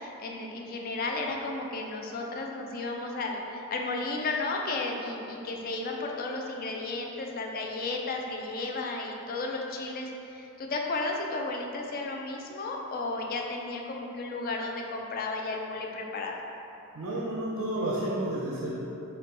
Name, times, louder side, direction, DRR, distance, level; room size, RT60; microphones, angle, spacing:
voice 1, 0.0-16.4, left 3 dB, 45° left, 1 dB, 0.4 m, -33 dB
voice 2, 16.9-18.7, right 1 dB, 85° right, -5 dB, 0.6 m, -31 dB
4.3 x 2.2 x 3.8 m, 2.9 s
head